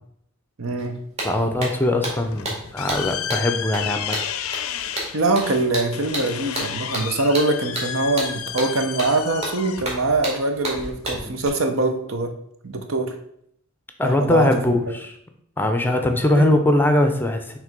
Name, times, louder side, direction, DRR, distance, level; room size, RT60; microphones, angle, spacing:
voice 1, 0.6-1.0 5.1-12.3 12.6-13.1 14.0-14.5 16.3-16.5, right 2 dB, 70° right, 6 dB, 0.8 m, -23 dB
sound 1, 0.8-0.9 1.2-11.5, right 1 dB, 30° right, 2.0 m, -31 dB
voice 2, 1.2-4.2 14.0-15.2 15.6-17.6, left 1 dB, 10° left, 6 dB, 0.5 m, -21 dB
sound 2, 2.1-11.2, left 9 dB, 90° left, 0.5 m, -32 dB
6.3 x 3.3 x 5.2 m, 0.71 s
head